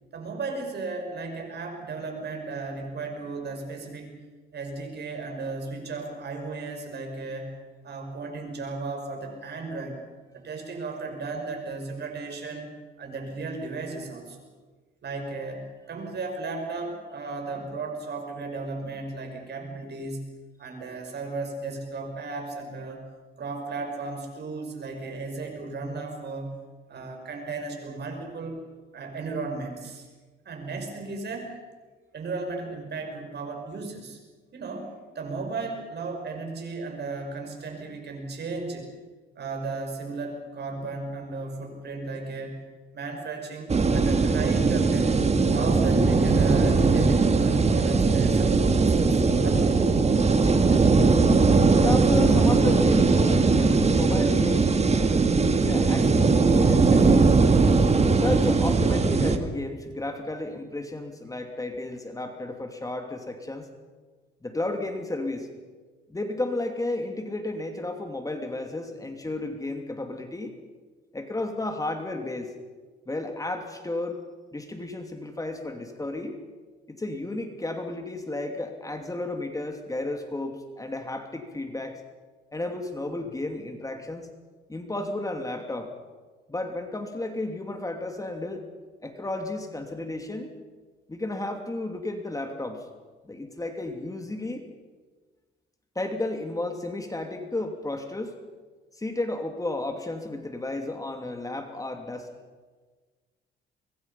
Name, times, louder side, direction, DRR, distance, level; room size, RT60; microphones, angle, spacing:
voice 1, 0.1-4.2 4.5-7.6 7.8-10.0 10.3-14.4 15.0-23.1 23.4-26.6 26.9-28.6 28.9-30.1 30.4-31.5 32.1-34.2 34.5-38.9 39.4-45.2 45.5-49.8, right 3 dB, 60° right, 4 dB, 6.2 m, -35 dB
sound 1, 43.7-59.4, right 4 dB, 35° right, 2.0 m, -20 dB
voice 2, 50.4-51.3 51.7-54.9 55.5-57.6 58.2-63.7 64.4-65.5 66.1-70.5 71.1-72.5 73.1-74.2 74.5-76.4 76.9-82.0 82.5-84.3 84.7-85.9 86.5-88.7 89.0-90.5 91.1-92.9 93.2-94.6 95.9-98.3 99.0-102.3, left 2 dB, 15° left, 4 dB, 2.8 m, -33 dB
25.0 x 22.0 x 5.8 m, 1.4 s
cardioid pair, 90°, 20 cm